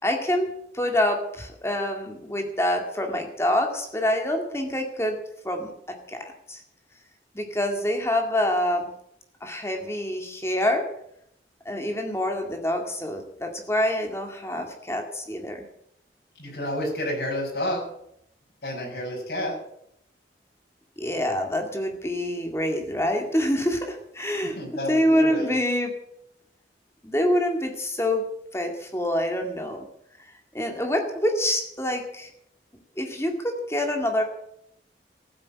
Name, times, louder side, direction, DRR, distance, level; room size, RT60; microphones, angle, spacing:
voice 1, 0.0-5.2 5.4-6.6 7.3-8.9 9.4-10.9 11.7-15.7 21.0-24.6 24.9-25.9 27.0-28.2 28.5-29.9 30.5-32.3 33.0-34.2, left 1 dB, 15° left, 3 dB, 2.1 m, -26 dB
voice 2, 16.4-17.8 18.6-19.6 24.6-25.5, left 1 dB, 60° left, -1 dB, 5.8 m, -30 dB
15.0 x 8.8 x 8.6 m, 0.75 s
head